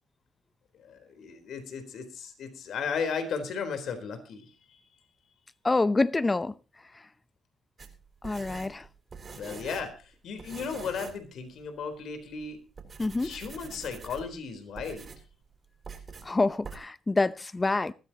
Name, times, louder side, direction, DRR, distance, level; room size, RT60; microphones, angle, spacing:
voice 1, 0.8-4.5 9.3-12.6 13.2-15.1, left 6 dB, 70° left, 3.9 m, -35 dB
voice 2, 5.6-6.5 8.2-8.9 13.0-13.3 16.2-17.9, left 3 dB, 20° left, 0.7 m, -26 dB
sound 1, 7.8-10.0 10.4-11.3 11.6-11.7 12.3-12.5 12.8-14.4 14.8-15.3 15.8-16.3 16.6-16.8, right 5 dB, 40° right, 4.3 m, -44 dB
20.5 x 14.0 x 2.9 m
cardioid pair, 90°, 0 cm